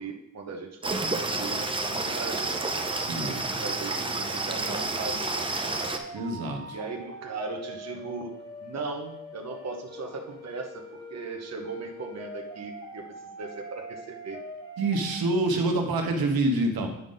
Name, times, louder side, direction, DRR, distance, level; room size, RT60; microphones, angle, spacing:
voice 1, 0.0-2.8 3.4-5.9 6.7-8.3 8.6-13.1 13.3-14.4, right 4 dB, 45° right, 2 dB, 0.9 m, -38 dB
sound 1, 0.8-15.2, equal, 10° left, 1.5 m, -43 dB
sound 2, 0.8-6.0, right 2 dB, 15° right, 0.5 m, -30 dB
voice 2, 3.1-3.4 6.1-6.8 14.8-16.9, right 2 dB, 90° right, 2 dB, 1.2 m, -26 dB
9.3 x 5.2 x 3.9 m, 0.83 s
wide cardioid pair, 140°, 35 cm